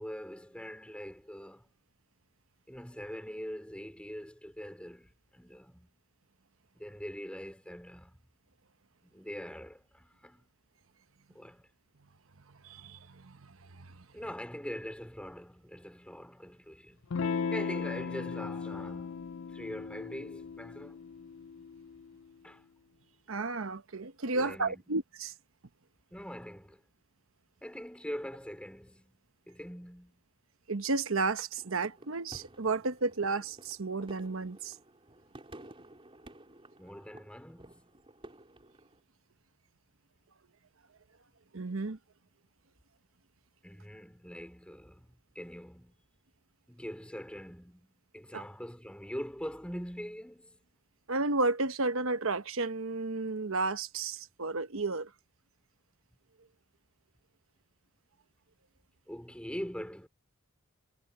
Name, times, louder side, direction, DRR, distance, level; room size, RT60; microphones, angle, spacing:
voice 1, 0.0-1.7 2.7-5.9 6.7-8.2 9.0-10.4 11.3-11.7 14.1-21.0 22.4-22.6 24.3-24.8 26.1-26.8 27.6-29.2 29.5-30.2 36.8-37.8 43.6-45.9 46.7-50.6 59.1-60.1, equal, 5° left, 3.3 m, -43 dB
voice 2, 12.6-13.9 23.3-25.3 30.7-34.7 41.5-42.0 48.3-48.4 51.1-55.1, right 3 dB, 75° right, 1.1 m, -32 dB
Electric guitar / Strum, 17.1-22.2, left 5 dB, 65° left, 0.4 m, -37 dB
sound 1, 31.6-39.0, right 1 dB, 25° right, 4.1 m, -53 dB
head